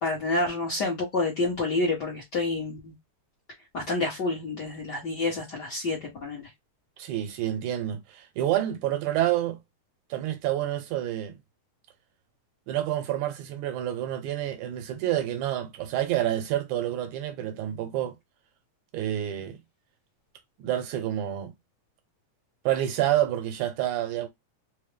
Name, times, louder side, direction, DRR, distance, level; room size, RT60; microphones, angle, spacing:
voice 1, 0.0-2.9 3.7-6.5, left 2 dB, 55° left, 1.1 m, -28 dB
voice 2, 7.0-9.6 10.1-11.4 12.7-18.2 18.9-19.6 20.6-21.5 22.7-24.3, right 12 dB, 80° right, 2.1 m, -28 dB
4.9 x 2.0 x 3.3 m
omnidirectional pair, 3.5 m